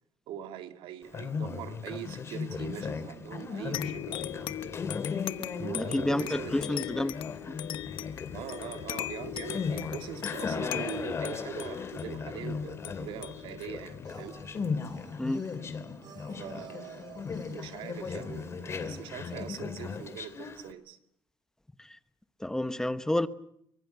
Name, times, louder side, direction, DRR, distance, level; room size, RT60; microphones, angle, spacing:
voice 1, 0.3-4.8 5.6-6.6 8.3-14.4 16.4-21.0, right 10 dB, 90° right, 2.3 m, -42 dB
Conversation, 1.0-20.7, left 5 dB, 30° left, 2.7 m, -37 dB
sound 1, 3.7-14.8, left 13 dB, 80° left, 1.0 m, -40 dB
voice 2, 5.7-7.1 15.2-15.4 22.4-23.3, left 1 dB, 5° left, 1.0 m, -29 dB
sound 2, 14.0-19.5, right 3 dB, 55° right, 4.8 m, -53 dB
24.5 x 23.0 x 8.1 m
cardioid pair, 145°, 8 cm